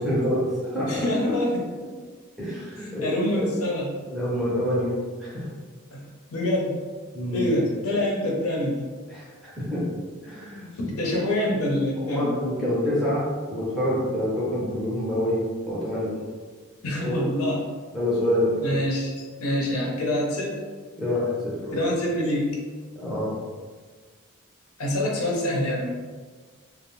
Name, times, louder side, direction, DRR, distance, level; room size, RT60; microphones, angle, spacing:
voice 1, 0.0-1.0 2.4-3.5 4.1-4.9 5.2-5.4 7.1-7.5 9.1-9.8 10.2-10.7 12.0-16.1 17.0-17.2 17.9-18.7 21.0-21.8 23.0-23.3, equal, ahead, -8 dB, 0.6 m, -27 dB
voice 2, 0.9-1.7 2.8-3.9 5.9-6.0 6.3-6.8 7.3-8.9 10.8-12.4 16.8-17.6 18.6-20.6 21.7-22.6 24.8-25.9, left 1 dB, 75° left, -2 dB, 0.6 m, -26 dB
2.5 x 2.0 x 2.9 m, 1.5 s
head